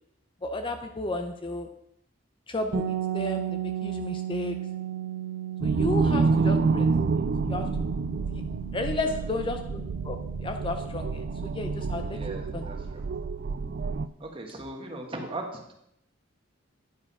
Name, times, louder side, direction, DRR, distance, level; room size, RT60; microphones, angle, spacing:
voice 1, 0.4-1.7 2.5-4.6 5.6-6.9 7.5-7.7 8.3-8.4 8.7-12.2 12.5-12.7, left 2 dB, 25° left, 6 dB, 0.5 m, -33 dB
sound 1, 2.7-12.5, right 10 dB, 90° right, 0.8 m, -36 dB
sound 2, 5.6-14.1, right 4 dB, 50° right, 0.4 m, -28 dB
voice 2, 12.1-13.0 14.2-15.7, right 2 dB, 25° right, 2 dB, 1.3 m, -38 dB
10.5 x 4.8 x 5.4 m, 0.77 s
head